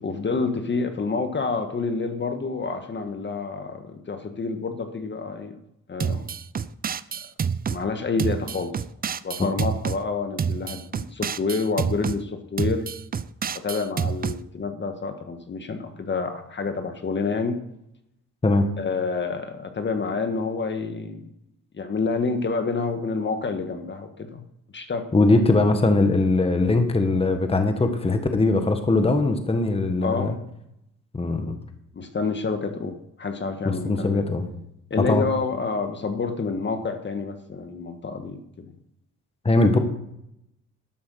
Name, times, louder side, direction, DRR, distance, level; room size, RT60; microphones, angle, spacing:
voice 1, 0.0-5.5 5.9-6.3 7.7-8.7 9.2-12.8 13.5-17.6 18.8-21.3 21.7-24.4 24.7-25.0 30.0-30.3 31.9-34.2 34.9-38.7, left 4 dB, 35° left, 7 dB, 1.6 m, -28 dB
sound 1, 6.0-7.8 8.2-10.0 10.4-12.2 12.6-14.4, right 7 dB, 30° right, 0.5 m, -28 dB
voice 2, 25.1-30.4 31.1-31.5 33.6-34.5 35.0-35.2 39.4-39.8, left 2 dB, 20° left, 6 dB, 1.5 m, -21 dB
12.5 x 8.1 x 6.4 m, 0.79 s
cardioid pair, 90°, 30 cm